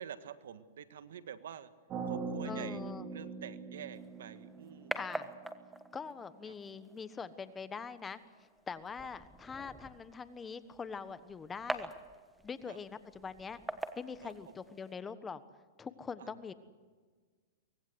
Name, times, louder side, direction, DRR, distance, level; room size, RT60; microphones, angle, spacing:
voice 1, 0.0-1.7 2.0-2.8 3.1-5.0 6.5-6.6 12.7-12.8 14.2-14.3 16.2-16.3, right 9 dB, 80° right, 11 dB, 1.6 m, -47 dB
sound 1, 1.9-6.0, right 4 dB, 30° right, 5.0 m, -42 dB
voice 2, 2.4-3.1 4.9-5.3 5.9-8.2 8.7-11.9 12.4-13.6 14.0-15.4 15.8-16.5, left 5 dB, 15° left, 13 dB, 1.2 m, -43 dB
sound 2, 3.9-14.9, right 2 dB, 5° right, 1.4 m, -46 dB
24.0 x 19.0 x 8.0 m, 1.5 s
hypercardioid pair, 135°, 0 cm